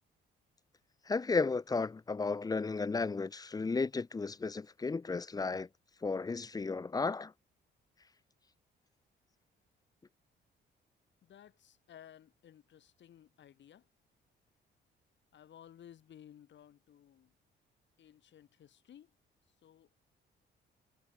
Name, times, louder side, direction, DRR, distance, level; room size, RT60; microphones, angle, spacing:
voice 1, 1.1-5.7 6.0-7.3, left 4 dB, 20° left, 0.5 m, -34 dB
voice 2, 11.2-13.9 15.3-17.4 18.0-19.1 19.5-19.9, left 10 dB, 65° left, 5.6 m, -57 dB
cardioid pair, 90°, 20 cm